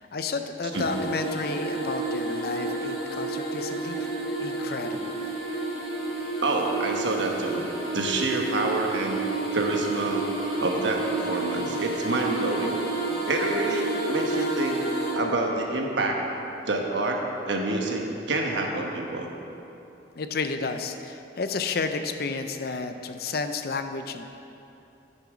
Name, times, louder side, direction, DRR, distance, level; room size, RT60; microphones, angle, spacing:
voice 1, 0.0-4.1 4.4-5.2 20.2-24.3, left 4 dB, 55° left, 8 dB, 0.5 m, -32 dB
sound 1, 0.7-15.1, right 2 dB, 30° left, 2.1 m, -30 dB
voice 2, 6.4-7.7 7.9-9.2 9.5-10.3 10.6-12.8 13.3-14.8 15.1-19.3, right 2 dB, 80° right, 1 dB, 1.2 m, -27 dB
9.7 x 7.0 x 4.9 m, 2.8 s
head